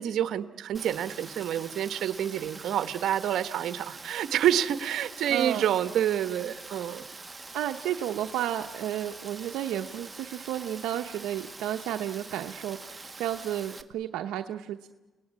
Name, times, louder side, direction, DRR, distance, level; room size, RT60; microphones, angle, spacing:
voice 1, 0.0-7.0, right 10 dB, 75° right, 12 dB, 1.3 m, -28 dB
Rain, 0.7-13.8, right 3 dB, 20° right, 1.7 m, -44 dB
voice 2, 5.3-5.6 7.5-14.9, right 11 dB, 90° right, 5 dB, 0.9 m, -32 dB
29.5 x 19.0 x 9.8 m, 1.2 s
cardioid pair, 90°, 0 cm